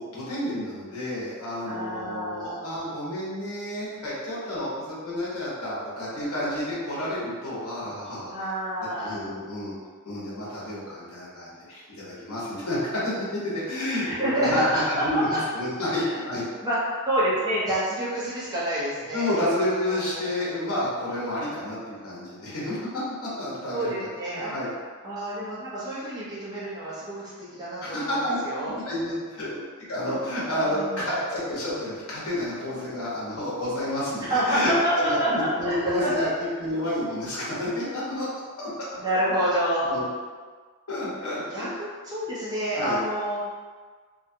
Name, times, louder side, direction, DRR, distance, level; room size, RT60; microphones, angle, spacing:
voice 1, 0.0-8.5 9.0-9.7 10.0-16.4 19.1-22.8 23.2-24.7 27.8-29.5 29.9-38.3 38.6-38.7 39.8-40.1 40.9-41.7 42.7-43.0, left 1 dB, 75° left, -8 dB, 1.0 m, -30 dB
voice 2, 1.7-2.6 8.3-9.2 14.0-15.0 15.9-16.1 16.6-20.5 23.7-24.6 25.0-28.1 28.4-29.6 30.6-31.0 34.3-36.1 39.0-40.0 41.5-43.4, right 1 dB, 20° right, -10 dB, 0.9 m, -28 dB
2.8 x 2.3 x 2.7 m, 1.5 s
head